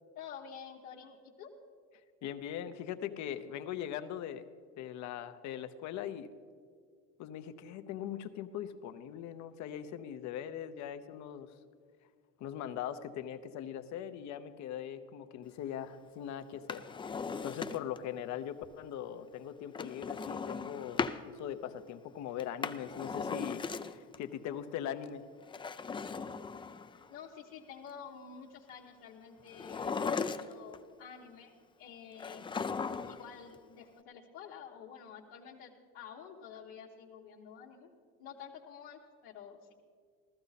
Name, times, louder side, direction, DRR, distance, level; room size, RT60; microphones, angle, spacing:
voice 1, 0.1-1.5 27.1-31.5 31.8-32.4 33.1-37.9 38.2-39.7, left 7 dB, 85° left, -5 dB, 1.3 m, -49 dB
voice 2, 2.2-4.5 4.8-6.3 7.2-11.5 12.4-16.8 17.1-25.2, left 10 dB, 60° left, 9 dB, 0.8 m, -41 dB
Drawer open or close, 16.5-18.1 19.7-21.2 22.4-24.2 25.4-27.1 29.5-30.8 32.2-33.3 33.6-33.7, left 5 dB, 15° left, 0.4 m, -37 dB
14.5 x 14.0 x 4.1 m, 2.1 s
supercardioid pair, 105°, 32 cm